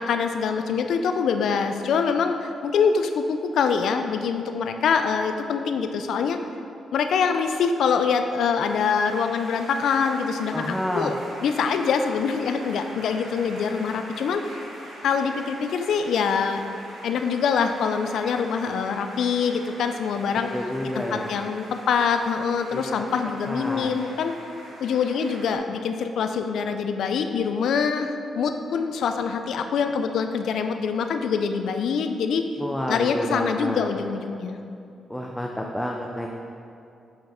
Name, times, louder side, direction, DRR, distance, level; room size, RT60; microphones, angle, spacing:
voice 1, 0.0-6.4 6.9-11.2 11.4-14.6 15.0-16.6 17.0-20.6 20.9-24.3 24.8-32.4 32.9-34.6, left 6 dB, 75° left, 6 dB, 0.3 m, -24 dB
sound 1, 8.6-25.6, right 1 dB, 90° right, 1.5 m, -43 dB
voice 2, 10.5-11.1 20.5-21.3 22.7-22.8 23.5-23.9 32.6-33.9 35.1-36.3, equal, 5° left, 0 dB, 0.4 m, -29 dB
5.7 x 5.3 x 4.3 m, 2.6 s
cardioid pair, 130°, 0 cm